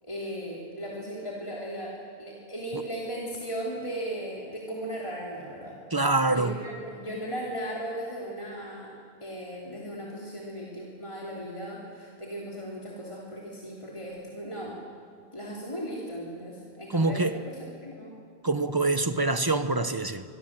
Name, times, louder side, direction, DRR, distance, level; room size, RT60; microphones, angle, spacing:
voice 1, 0.0-5.8 6.3-8.9 9.2-14.8 15.3-18.1, equal, 30° left, -4 dB, 3.4 m, -37 dB
voice 2, 5.9-6.5 16.9-17.4 18.4-20.2, right 2 dB, 25° right, 10 dB, 1.0 m, -25 dB
25.0 x 24.0 x 7.6 m, 2.4 s
omnidirectional pair, 1.0 m